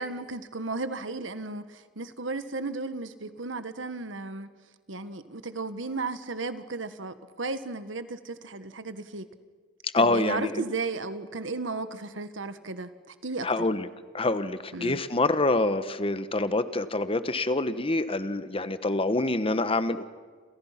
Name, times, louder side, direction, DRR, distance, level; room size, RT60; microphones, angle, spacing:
voice 1, 0.0-4.5 4.9-9.3 10.0-13.7 14.7-15.0, right 3 dB, 80° right, 11 dB, 1.5 m, -34 dB
voice 2, 9.9-10.6 13.4-13.9 14.1-20.0, left 2 dB, 30° left, 12 dB, 1.2 m, -26 dB
29.5 x 27.5 x 5.9 m, 1.5 s
head